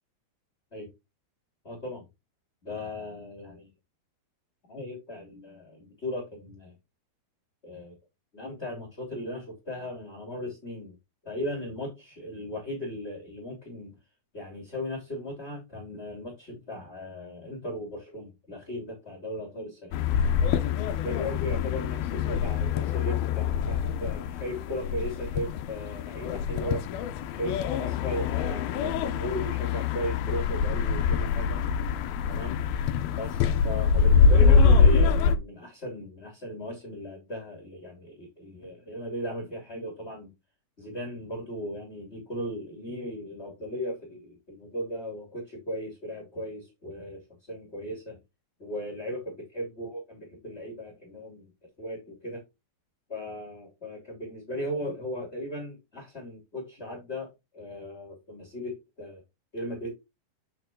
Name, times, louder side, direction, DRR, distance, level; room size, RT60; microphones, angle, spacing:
voice 1, 1.6-2.0 2.6-3.7 4.7-6.7 7.6-8.0 8.3-10.9 11.2-13.9 14.3-20.0 20.6-26.8 27.3-31.7 32.3-32.6 33.1-40.3 40.8-48.2 48.6-51.5 51.8-52.4 53.1-59.2 59.5-59.9, equal, 20° left, 2.7 m, -37 dB
sound 1, 19.9-35.4, left 6 dB, 80° left, 2.6 m, -24 dB
8.7 x 4.7 x 3.7 m
omnidirectional pair, 4.5 m